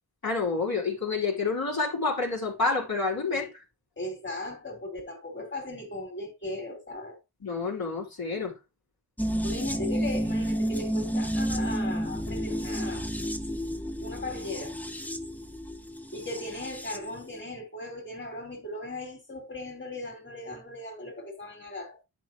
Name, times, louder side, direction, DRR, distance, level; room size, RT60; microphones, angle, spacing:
voice 1, 0.2-3.5 7.4-8.5, left 4 dB, 60° left, 3.4 m, -28 dB
voice 2, 4.0-7.2 9.4-13.0 14.0-14.8 16.1-22.0, left 1 dB, 25° left, 3.5 m, -38 dB
sound 1, 9.2-17.1 17.4-17.5, equal, 5° left, 0.8 m, -31 dB
10.5 x 5.7 x 3.0 m
wide cardioid pair, 105°, 40 cm